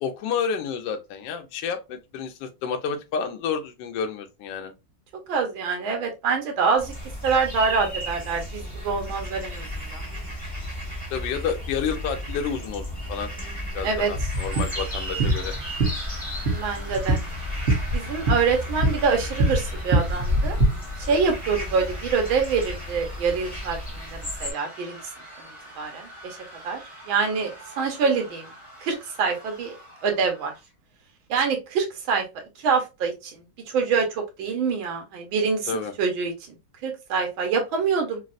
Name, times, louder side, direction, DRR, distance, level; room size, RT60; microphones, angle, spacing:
voice 1, 0.0-4.7 11.1-12.8 13.1-13.3 13.7-15.5 35.7-35.9, left 6 dB, 75° left, 1.2 m, -30 dB
voice 2, 5.3-6.9 7.2-9.7 9.9-10.0 13.8-14.1 16.5-17.2 17.9-20.6 21.1-25.0 25.8-26.4 26.6-26.8 27.1-28.5 28.8-29.8 30.0-30.5 31.3-32.2 32.6-33.4 33.7-36.3 36.8-38.2, right 5 dB, 80° right, 1.7 m, -25 dB
sound 1, 6.8-24.5, equal, 5° left, 0.9 m, -34 dB
sound 2, 14.1-20.7, right 1 dB, 50° right, 1.1 m, -25 dB
sound 3, 14.3-30.6, equal, 25° right, 0.7 m, -44 dB
4.0 x 2.0 x 2.4 m
omnidirectional pair, 2.2 m